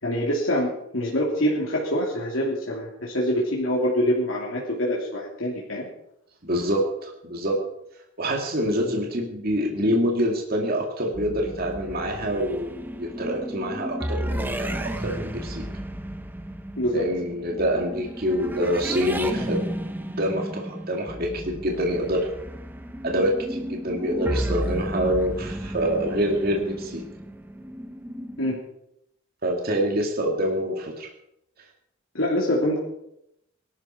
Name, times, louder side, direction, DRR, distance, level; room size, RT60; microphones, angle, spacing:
voice 1, 0.0-5.9 16.8-17.1 28.4-28.6 32.1-32.8, equal, 75° left, -4 dB, 3.0 m, -25 dB
voice 2, 6.4-7.6 8.2-15.6 16.9-19.6 20.0-22.3 23.0-27.0 29.4-31.1, equal, 50° right, 1 dB, 2.4 m, -26 dB
sound 1, 11.1-28.6, right 1 dB, 10° right, 0.9 m, -33 dB
20.0 x 12.5 x 4.4 m, 0.80 s
head